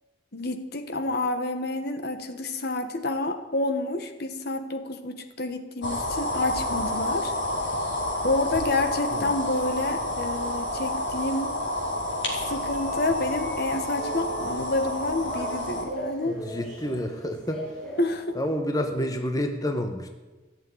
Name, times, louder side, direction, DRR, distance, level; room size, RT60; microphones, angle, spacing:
voice 1, 0.3-7.3 8.2-11.5 12.5-16.4 18.0-18.3, left 2 dB, 55° left, 8 dB, 1.2 m, -29 dB
sound 1, 5.8-15.8, left 1 dB, 70° left, 3.8 m, -29 dB
sound 2, 11.6-18.6, equal, 5° left, 5.2 m, -40 dB
voice 2, 16.2-17.7 18.3-20.1, equal, 20° left, 5 dB, 1.0 m, -29 dB
14.5 x 7.5 x 9.5 m, 1.2 s
head